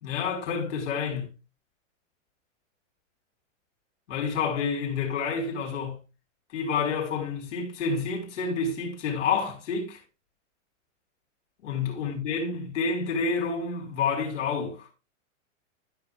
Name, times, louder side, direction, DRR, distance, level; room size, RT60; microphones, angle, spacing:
voice 1, 0.0-1.3 4.1-6.0 6.5-10.0 11.6-14.9, left 5 dB, 65° left, 4.6 m, -29 dB
14.5 x 7.1 x 2.4 m
supercardioid pair, 165°, 38 cm